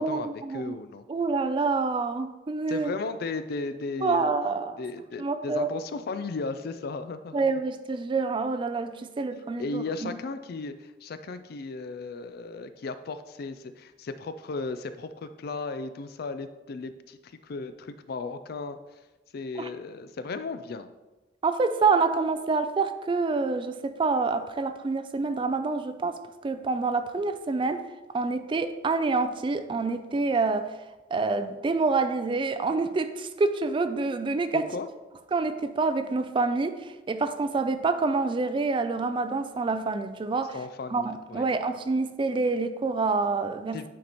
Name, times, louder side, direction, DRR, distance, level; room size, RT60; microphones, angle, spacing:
voice 1, 0.0-0.8 1.1-2.9 4.0-4.8 5.2-5.7 7.3-10.1 19.6-19.7 21.4-27.8 28.1-30.7 31.1-34.6 35.3-40.6 40.9-43.9, right 4 dB, 25° right, 10 dB, 0.3 m, -27 dB
voice 2, 0.5-1.0 2.7-4.3 4.8-7.5 9.6-18.8 19.3-20.9 34.5-34.9 40.5-41.5 43.7-43.9, left 3 dB, 55° left, 11 dB, 0.4 m, -35 dB
9.3 x 4.1 x 2.9 m, 1.1 s
head